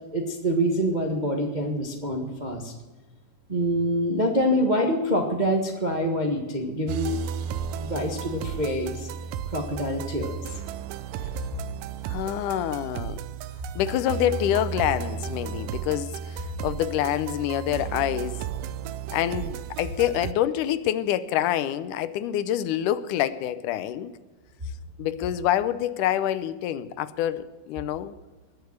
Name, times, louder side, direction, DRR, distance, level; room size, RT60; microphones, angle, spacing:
voice 1, 0.1-2.7 3.5-7.2 7.8-9.1 9.5-10.4, equal, 40° right, 2 dB, 0.6 m, -26 dB
sound 1, 6.9-20.3, right 8 dB, 80° right, 2.2 m, -34 dB
voice 2, 12.0-13.2 13.8-18.4 19.1-24.1 25.0-28.1, left 11 dB, 80° left, 14 dB, 2.1 m, -26 dB
20.5 x 6.9 x 8.0 m, 1.2 s
omnidirectional pair, 3.8 m